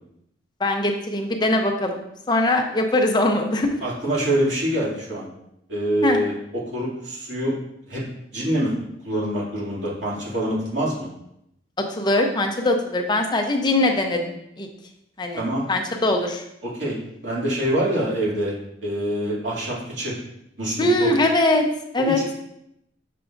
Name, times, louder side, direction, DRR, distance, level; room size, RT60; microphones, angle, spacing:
voice 1, 0.6-3.8 6.0-6.2 11.9-14.7 15.2-16.4 20.8-21.7 21.9-22.2, left 2 dB, 25° left, 3 dB, 0.6 m, -22 dB
voice 2, 3.8-5.3 5.7-7.5 7.9-8.0 8.3-8.7 9.0-11.1 15.3-15.6 16.6-18.5 18.8-20.1 20.6-21.1, right 1 dB, 90° right, -6 dB, 2.5 m, -25 dB
6.7 x 5.9 x 2.6 m, 0.79 s
head